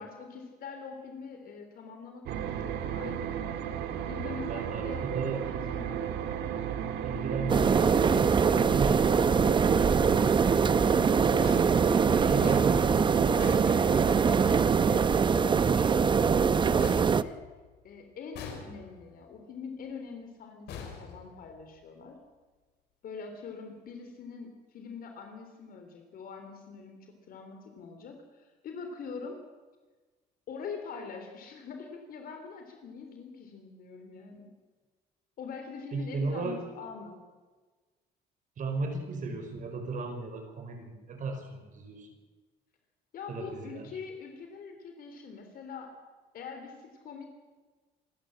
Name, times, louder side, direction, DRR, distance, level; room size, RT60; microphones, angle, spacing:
voice 1, 0.0-3.7 4.1-5.1 5.7-6.1 11.7-12.5 13.7-17.4 17.8-22.2 23.0-27.0 27.3-29.4 30.5-34.5 35.4-37.2 43.1-45.9 46.3-47.3, left 5 dB, 60° left, 4 dB, 3.3 m, -44 dB
sound 1, 2.3-15.3, right 9 dB, 80° right, 1.9 m, -35 dB
voice 2, 4.4-5.5 7.0-10.1 11.8-12.8 35.9-36.6 38.6-42.1 43.3-43.9, right 3 dB, 50° right, 5 dB, 5.4 m, -36 dB
sound 2, 7.5-17.2, right 6 dB, 30° right, 0.7 m, -23 dB
sound 3, 11.4-14.4 16.8-17.9 18.3-19.2 20.7-21.8, left 6 dB, 80° left, 4.7 m, -44 dB
27.0 x 13.5 x 7.7 m, 1.3 s
cardioid pair, 110°, 17 cm